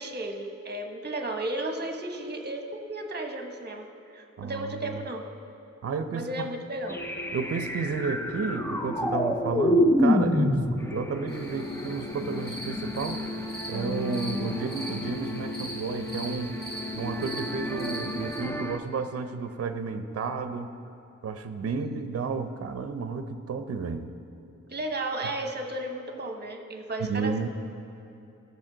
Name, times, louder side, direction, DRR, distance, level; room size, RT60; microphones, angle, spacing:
voice 1, 0.0-3.9 4.1-5.2 6.1-7.0 21.7-22.1 24.7-27.5, right 1 dB, 35° right, 4 dB, 1.0 m, -34 dB
voice 2, 4.4-5.0 5.8-6.5 7.3-13.2 13.7-16.6 17.0-20.7 21.2-24.1 27.1-27.5, right 4 dB, 55° right, 9 dB, 0.6 m, -32 dB
sound 1, 6.9-18.8, left 1 dB, 10° left, 0.5 m, -29 dB
sound 2, 11.3-18.4, right 1 dB, 35° left, 2.5 m, -41 dB
16.5 x 7.0 x 3.9 m, 2.8 s
wide cardioid pair, 135°, 29 cm